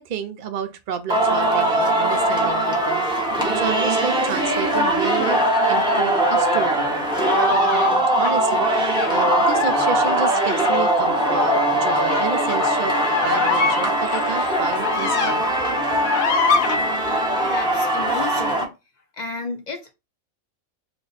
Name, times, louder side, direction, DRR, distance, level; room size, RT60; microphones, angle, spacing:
voice 1, 0.0-7.1 7.5-12.9 13.2-15.5, right 7 dB, 80° right, 0.4 m, -31 dB
Singing, 1.1-18.6, right 1 dB, 5° right, 0.7 m, -21 dB
sound 1, 5.0-6.7 7.1-7.9 8.2-8.3 8.8-15.4 15.6-16.8, left 6 dB, 75° left, 1.1 m, -25 dB
voice 2, 17.4-18.8 19.1-19.9, left 4 dB, 60° left, 0.4 m, -32 dB
3.3 x 2.2 x 3.9 m
omnidirectional pair, 1.5 m